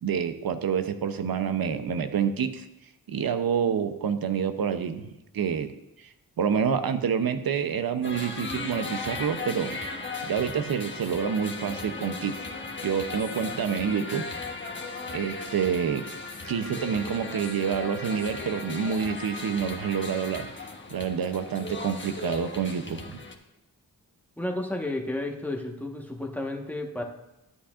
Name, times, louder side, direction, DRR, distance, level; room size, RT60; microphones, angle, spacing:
voice 1, 0.0-2.6 3.1-5.7 6.0-6.1 6.4-9.8 10.3-12.4 12.8-14.2 15.1-16.1 16.5-20.5 20.9-23.2, right 7 dB, 70° right, 9 dB, 0.8 m, -28 dB
sound 1, 8.0-23.3, left 3 dB, 30° left, 1.2 m, -37 dB
voice 2, 24.4-27.0, left 1 dB, 5° left, 1 dB, 1.3 m, -32 dB
12.5 x 8.4 x 2.5 m, 0.93 s
cardioid pair, 60°, 36 cm